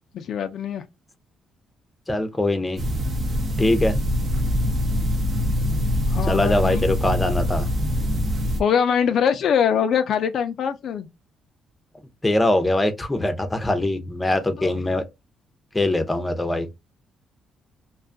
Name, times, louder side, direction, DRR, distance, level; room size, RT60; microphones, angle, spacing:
voice 1, 0.1-0.8 6.1-6.8 8.6-11.1 14.6-14.7, left 7 dB, 65° left, 0.3 m, -23 dB
voice 2, 2.1-2.8 3.6-3.9 6.3-7.7 12.2-15.0 15.7-16.7, left 1 dB, 15° left, 0.6 m, -22 dB
sound 1, 2.8-8.6, left 1 dB, 50° right, 0.7 m, -23 dB
2.5 x 2.3 x 2.4 m
cardioid pair, 90°, 0 cm